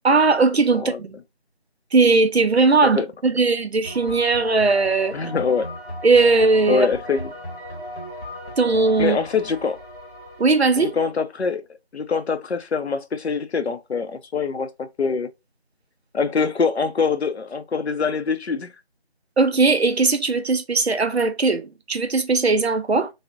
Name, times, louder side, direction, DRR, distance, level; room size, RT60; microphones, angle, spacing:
voice 1, 0.0-1.1 1.9-5.1 6.0-6.9 8.6-9.2 10.4-10.9 19.4-23.1, right 3 dB, 75° right, 0.6 m, -18 dB
sound 1, 3.8-11.1, equal, 60° left, 1.1 m, -37 dB
voice 2, 5.1-5.7 6.7-7.3 9.0-9.8 10.8-11.6 11.9-15.3 16.1-18.7, left 5 dB, 90° left, 0.5 m, -24 dB
2.6 x 2.0 x 2.4 m
figure-of-eight pair, 180°, 32 cm